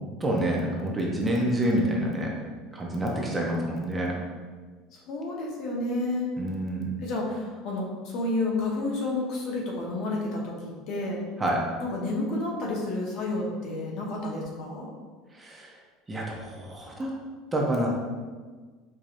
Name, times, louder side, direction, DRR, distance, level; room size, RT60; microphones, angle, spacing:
voice 1, 0.2-2.3 2.7-4.1 6.4-6.9 11.4-11.6 15.3-15.7 16.1-17.1 17.5-17.9, right 1 dB, 15° right, -2 dB, 0.6 m, -27 dB
voice 2, 4.9-6.3 7.0-11.2 11.8-14.9, left 2 dB, 55° left, -2 dB, 0.9 m, -30 dB
4.7 x 2.7 x 2.5 m, 1.4 s
cardioid pair, 135°, 0 cm